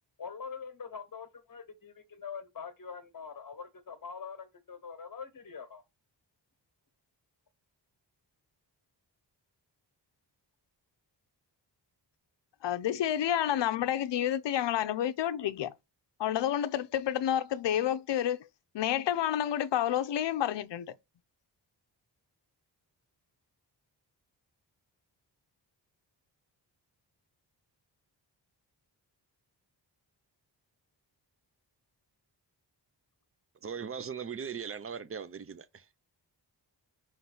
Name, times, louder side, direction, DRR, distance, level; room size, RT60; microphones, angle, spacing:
voice 1, 0.2-5.8, left 6 dB, 45° left, 1.4 m, -44 dB
voice 2, 12.6-15.7 16.2-18.5 18.7-20.9, left 11 dB, 75° left, 0.6 m, -29 dB
voice 3, 33.6-35.9, right 6 dB, 30° right, 0.6 m, -39 dB
5.9 x 3.2 x 5.4 m
wide cardioid pair, 120°, 44 cm